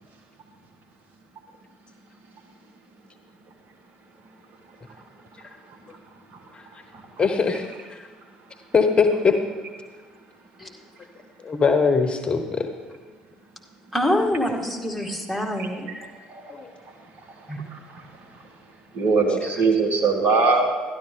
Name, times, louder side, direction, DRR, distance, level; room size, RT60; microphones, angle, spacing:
voice 1, 7.2-8.0 8.7-9.4 11.4-12.7 16.5-16.7, left 5 dB, 30° left, 6 dB, 1.1 m, -21 dB
voice 2, 13.9-15.9 17.5-17.6, left 1 dB, ahead, 0 dB, 2.0 m, -25 dB
voice 3, 17.2-18.5 18.9-20.8, right 4 dB, 55° right, 3 dB, 1.6 m, -23 dB
12.0 x 11.5 x 3.8 m, 1.4 s
figure-of-eight pair, 55°, 4 cm